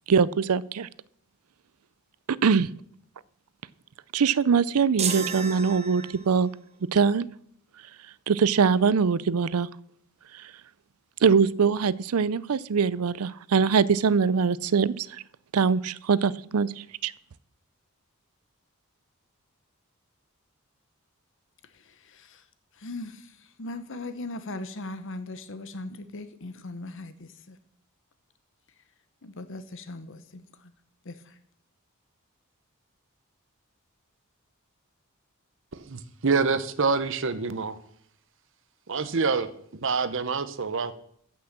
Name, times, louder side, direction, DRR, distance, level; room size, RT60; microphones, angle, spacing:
voice 1, 0.1-0.9 2.3-2.7 4.1-6.5 6.9-7.3 8.3-9.7 11.2-15.2 15.5-17.1, right 6 dB, 90° right, 0.5 m, -23 dB
sound 1, 5.0-6.5, right 6 dB, 30° right, 1.1 m, -32 dB
voice 2, 22.0-22.4 22.8-23.3 23.6-27.6 29.2-30.4 31.0-31.2, left 2 dB, 60° left, 1.0 m, -38 dB
voice 3, 35.9-37.8 38.9-40.9, right 4 dB, 60° right, 0.9 m, -26 dB
14.5 x 6.2 x 7.4 m
head